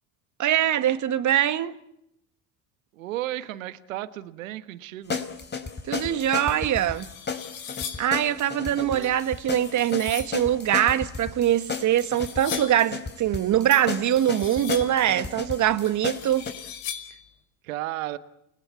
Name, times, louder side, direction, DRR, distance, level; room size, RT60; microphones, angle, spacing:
voice 1, 0.4-1.7 5.9-7.1 8.0-16.5, right 11 dB, 45° right, 1.9 m, -23 dB
voice 2, 2.9-5.2 8.6-9.2 17.1-17.2 17.6-18.2, right 15 dB, 80° right, 1.4 m, -34 dB
sound 1, 5.1-16.5, left 5 dB, 25° left, 4.2 m, -34 dB
sound 2, 6.8-8.2 9.0-10.4 11.4-12.9 13.7-15.1 15.8-17.3, left 9 dB, 70° left, 5.1 m, -40 dB
29.5 x 20.0 x 8.4 m
hypercardioid pair, 75°, 39 cm